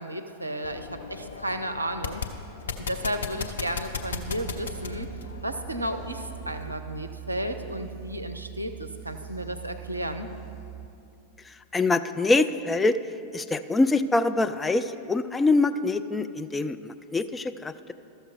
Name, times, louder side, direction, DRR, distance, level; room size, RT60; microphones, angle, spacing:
voice 1, 0.0-2.2 2.8-5.1 5.4-10.3, equal, 85° right, 7 dB, 0.5 m, -33 dB
sound 1, 0.6-6.8, left 5 dB, 65° left, 0.6 m, -37 dB
sound 2, 4.0-10.9, right 14 dB, 50° right, 1.6 m, -42 dB
voice 2, 11.4-13.0 13.3-17.9, left 3 dB, 10° left, 10 dB, 0.3 m, -25 dB
13.0 x 6.5 x 4.6 m, 2.6 s
figure-of-eight pair, 90°, 0 cm